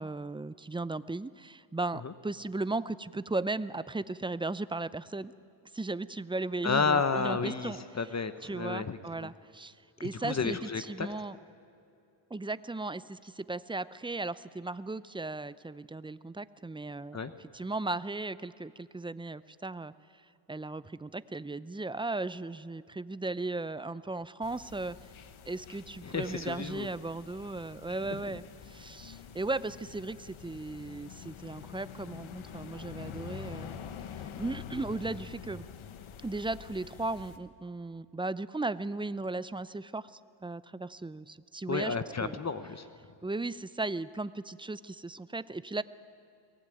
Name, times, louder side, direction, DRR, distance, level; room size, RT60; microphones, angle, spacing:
voice 1, 0.0-5.3 5.7-7.8 8.4-9.7 10.0-11.4 12.3-19.9 20.5-25.0 25.5-33.8 34.4-35.6 36.2-42.4 43.2-45.8, right 2 dB, 10° right, 16 dB, 0.5 m, -36 dB
voice 2, 6.6-9.3 10.2-11.1 17.1-17.3 26.0-26.9 41.7-42.9, left 5 dB, 35° left, 11 dB, 1.1 m, -31 dB
sound 1, 24.4-37.4, left 8 dB, 80° left, 1.5 m, -46 dB
23.5 x 18.5 x 9.2 m, 2.6 s
cardioid pair, 100°, 48 cm